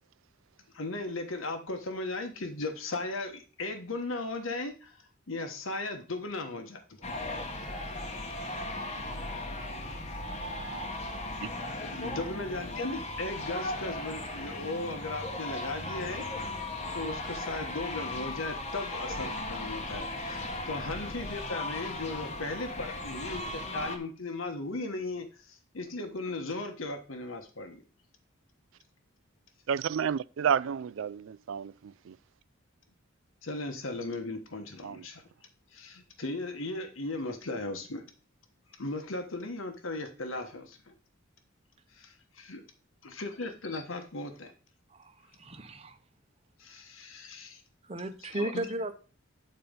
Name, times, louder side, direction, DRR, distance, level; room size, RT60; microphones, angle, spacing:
voice 1, 0.7-7.5 11.8-16.2 16.9-27.8 33.4-35.2 35.7-38.0 38.7-40.9 41.9-42.6 43.0-44.5 46.6-47.6 48.2-48.7, left 2 dB, 80° left, 1.2 m, -37 dB
sound 1, 7.0-24.0, left 2 dB, 30° left, 1.0 m, -37 dB
voice 2, 29.7-31.7 32.1-32.2 34.8-34.9, right 7 dB, 70° right, 0.3 m, -30 dB
voice 3, 44.9-46.0 47.8-48.9, right 1 dB, 30° right, 0.8 m, -36 dB
9.2 x 4.3 x 5.2 m
head